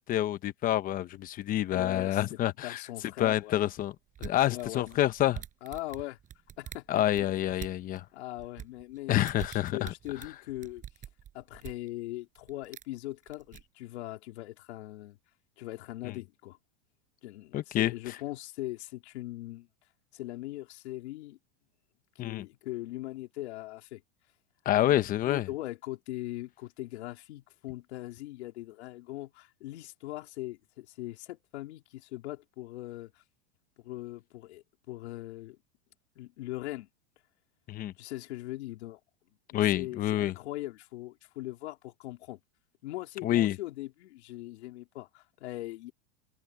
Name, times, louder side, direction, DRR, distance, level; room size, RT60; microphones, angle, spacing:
voice 1, 0.0-2.8 3.2-3.9 4.2-5.4 6.9-8.0 9.1-9.9 16.0-16.1 17.5-18.2 22.2-22.5 24.6-25.5 37.7-37.9 39.5-40.3 43.2-43.6, left 13 dB, 25° left, 0.9 m, -28 dB
voice 2, 1.7-2.2 2.6-3.6 4.5-5.0 5.6-6.2 6.6-7.3 8.1-9.2 9.5-10.8 11.3-15.2 15.6-16.6 17.2-19.7 20.1-21.4 22.2-24.0 24.7-33.2 33.8-35.6 36.2-36.9 38.0-39.0 39.5-42.4 42.8-45.9, left 17 dB, 75° left, 3.7 m, -40 dB
sound 1, 4.1-8.0 8.4-11.9 12.3-12.9 13.3-13.6, right 10 dB, 25° right, 5.0 m, -45 dB
supercardioid pair, 155°, 33 cm